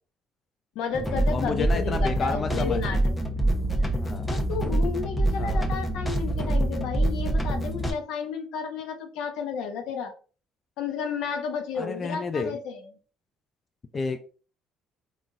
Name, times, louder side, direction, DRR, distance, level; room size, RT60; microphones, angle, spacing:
voice 1, 0.7-3.0 4.3-10.1 10.8-12.9, left 6 dB, 75° left, 0.7 m, -32 dB
sound 1, 0.9-7.9, right 1 dB, 15° left, 0.8 m, -26 dB
voice 2, 1.3-2.8 3.9-4.3 5.4-5.7 11.8-12.6 13.9-14.2, left 4 dB, 35° left, 0.4 m, -30 dB
3.8 x 2.5 x 2.4 m
supercardioid pair, 85°, 0 cm